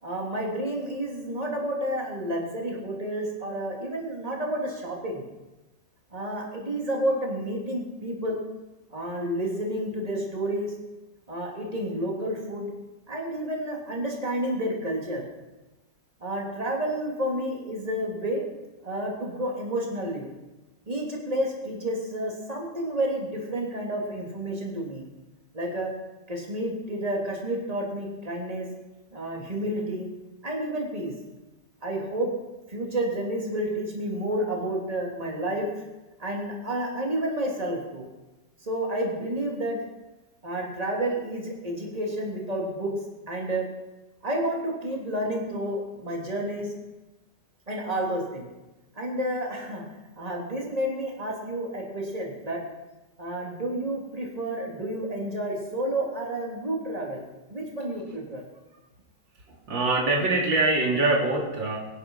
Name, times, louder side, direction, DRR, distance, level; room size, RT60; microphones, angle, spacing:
voice 1, 0.0-5.2 6.1-8.4 8.9-10.7 11.3-12.7 13.1-15.2 16.2-18.4 18.8-20.3 20.9-25.0 25.5-25.9 26.3-28.7 29.1-30.1 30.4-31.1 31.8-32.3 32.7-35.7 36.2-38.1 38.6-39.8 40.4-42.9 43.3-43.6 44.2-46.7 47.7-48.5 48.9-49.8 50.2-52.6 53.2-58.4, right 1 dB, 20° right, -1 dB, 3.3 m, -30 dB
voice 2, 59.5-61.8, right 2 dB, 75° right, -1 dB, 3.7 m, -24 dB
24.0 x 10.0 x 5.7 m, 1.1 s
omnidirectional pair, 2.0 m